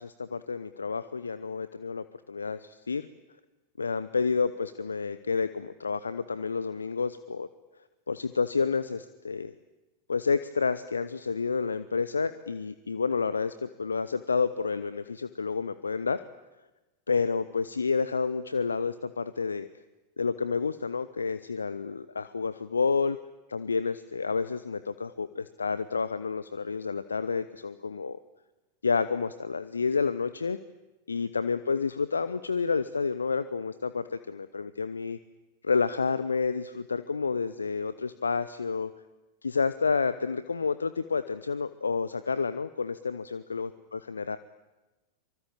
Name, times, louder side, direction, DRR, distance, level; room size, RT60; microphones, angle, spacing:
voice 1, 0.0-3.1 3.8-7.5 8.1-9.5 10.1-16.2 17.1-19.7 20.2-23.2 23.5-28.2 28.8-30.6 31.1-35.2 35.6-38.9 39.4-43.7 44.1-44.4, left 5 dB, 75° left, 14 dB, 0.8 m, -29 dB
24.5 x 24.5 x 8.9 m, 1.1 s
figure-of-eight pair, 90°, 0 cm